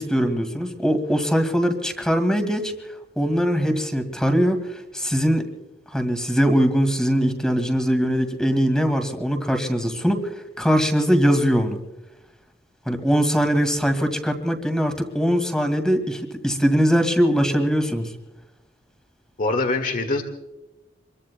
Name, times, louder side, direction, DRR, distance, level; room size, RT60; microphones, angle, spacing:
voice 1, 0.0-2.7 3.2-5.5 5.9-11.8 12.9-18.1, equal, 5° left, 6 dB, 2.1 m, -21 dB
voice 2, 19.4-20.2, left 2 dB, 45° left, 6 dB, 1.8 m, -23 dB
26.5 x 22.5 x 2.2 m, 0.97 s
head